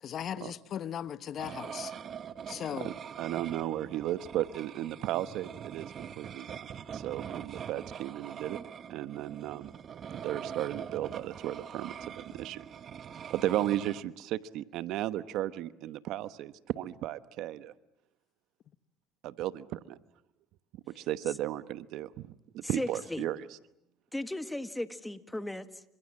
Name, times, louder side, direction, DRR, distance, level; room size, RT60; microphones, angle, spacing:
voice 1, 0.0-1.9 2.5-2.9, left 9 dB, 50° left, 1.1 m, -37 dB
sound 1, 1.4-14.0, right 8 dB, 45° right, 1.1 m, -43 dB
voice 2, 2.7-6.7 6.9-8.6 8.9-9.7 10.1-12.6 13.3-17.7 19.2-20.0 20.9-22.3 22.5-23.4, right 13 dB, 70° right, 1.0 m, -35 dB
voice 3, 22.8-23.3 24.1-25.8, left 1 dB, 5° left, 1.8 m, -36 dB
29.0 x 26.0 x 7.6 m
supercardioid pair, 95°, 0 cm